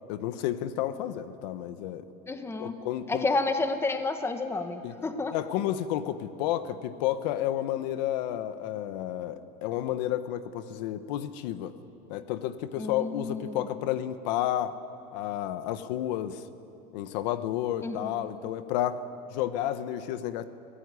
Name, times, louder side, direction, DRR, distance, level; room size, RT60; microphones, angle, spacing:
voice 1, 0.1-2.1 2.6-3.3 4.8-4.9 5.3-11.7 12.1-14.8 15.1-16.4 16.9-19.0 19.3-20.5, left 12 dB, 80° left, 12 dB, 1.2 m, -31 dB
voice 2, 2.3-2.8 3.1-5.3 12.8-13.6 17.8-18.1, left 3 dB, 10° left, 8 dB, 1.3 m, -30 dB
25.5 x 17.0 x 9.8 m, 2.9 s
cardioid pair, 155°, 21 cm